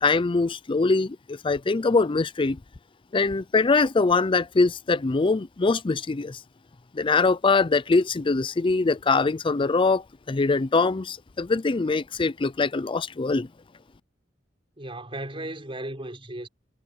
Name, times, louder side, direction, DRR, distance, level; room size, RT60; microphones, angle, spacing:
voice 1, 0.0-2.6 3.1-6.4 6.9-13.5, left 3 dB, 25° left, 0.5 m, -23 dB
voice 2, 14.8-16.5, right 1 dB, 30° right, 4.8 m, -35 dB
head